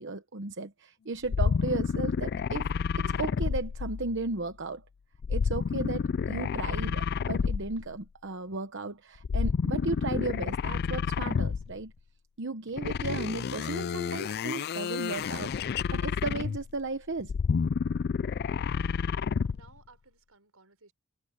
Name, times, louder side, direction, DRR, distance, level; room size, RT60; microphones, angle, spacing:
voice 1, 0.0-2.7 3.0-4.8 5.3-11.9 12.4-17.3, right 3 dB, 55° right, 1.0 m, -35 dB
sound 1, 1.2-4.3 5.2-7.9 9.2-11.8 12.8-16.8 17.2-19.7, left 6 dB, 50° left, 0.3 m, -30 dB
voice 2, 19.5-20.9, right 4 dB, 85° right, 5.7 m, -59 dB
head